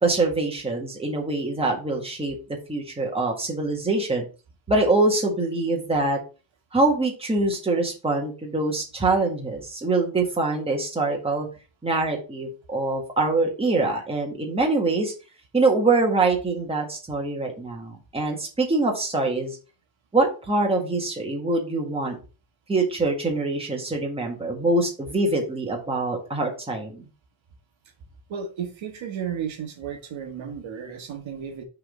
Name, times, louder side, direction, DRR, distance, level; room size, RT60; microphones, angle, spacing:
voice 1, 0.0-2.3 2.7-4.2 4.7-6.2 6.7-11.5 11.8-15.1 15.5-19.6 20.1-22.2 22.7-27.0, right 2 dB, 10° right, 0 dB, 1.6 m, -24 dB
voice 2, 28.3-31.6, right 7 dB, 85° right, 4 dB, 1.7 m, -33 dB
5.9 x 3.8 x 5.0 m, 0.33 s
wide cardioid pair, 175°, 45 cm